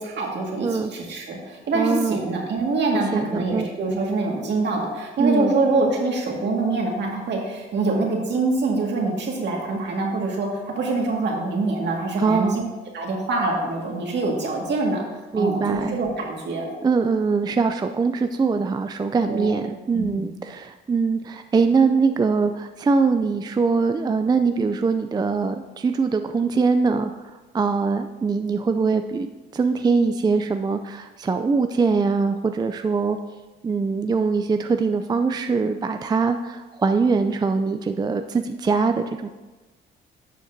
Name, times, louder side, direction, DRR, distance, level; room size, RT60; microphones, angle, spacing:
voice 1, 0.0-10.5 10.8-12.6 12.9-15.0 15.3-16.7 19.3-19.6 19.9-20.2, right 3 dB, 60° right, 0 dB, 1.9 m, -25 dB
voice 2, 1.7-2.2 3.1-3.7 5.2-5.5 12.2-12.6 15.3-16.0 16.8-27.1 27.5-33.2 33.6-38.9 39.2-39.3, right 4 dB, 20° right, 7 dB, 0.4 m, -22 dB
11.0 x 6.5 x 2.7 m, 1.2 s
cardioid pair, 90°, 20 cm